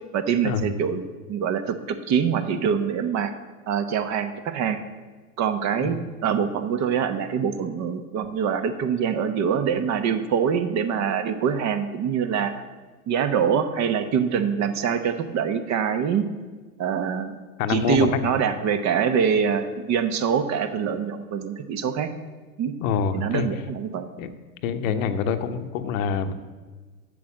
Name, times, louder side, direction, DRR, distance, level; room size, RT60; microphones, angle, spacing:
voice 1, 0.1-1.0 1.3-3.3 3.7-4.8 5.4-12.6 13.1-16.2 16.8-17.4 17.7-22.1 22.6-22.7 23.1-24.1, right 7 dB, 35° right, 10 dB, 0.9 m, -24 dB
voice 2, 17.6-18.3 22.8-23.5 24.2-24.3 24.6-26.3, left 6 dB, 60° left, 9 dB, 0.9 m, -25 dB
8.4 x 6.6 x 7.2 m, 1.4 s
hypercardioid pair, 100°, 45 cm